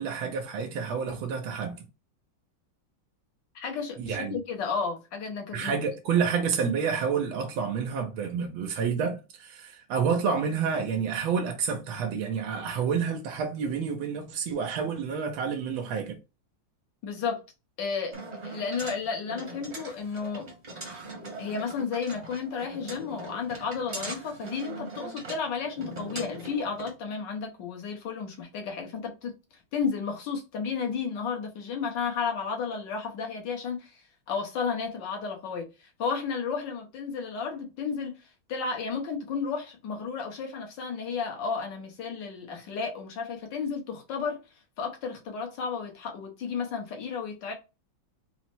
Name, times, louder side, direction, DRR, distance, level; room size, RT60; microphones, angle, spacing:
voice 1, 0.0-1.9 4.0-4.4 5.5-16.2, right 6 dB, 90° right, 1.5 m, -29 dB
voice 2, 3.6-5.8 17.0-17.4 17.8-20.5 21.4-29.3 29.7-44.4 44.8-47.5, left 5 dB, 65° left, 1.7 m, -33 dB
sound 1, 18.1-26.9, right 2 dB, 30° right, 0.9 m, -41 dB
4.2 x 2.1 x 4.3 m
omnidirectional pair, 2.1 m